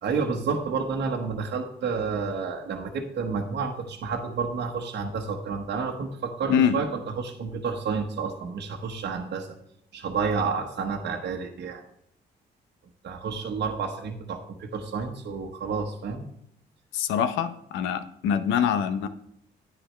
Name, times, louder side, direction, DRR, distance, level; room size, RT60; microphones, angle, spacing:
voice 1, 0.0-9.5 9.9-11.8 13.0-16.2, right 5 dB, 65° right, 2 dB, 1.2 m, -30 dB
voice 2, 16.9-19.1, left 8 dB, 90° left, 12 dB, 0.7 m, -24 dB
10.0 x 9.7 x 3.3 m, 0.72 s
supercardioid pair, 65°, 19 cm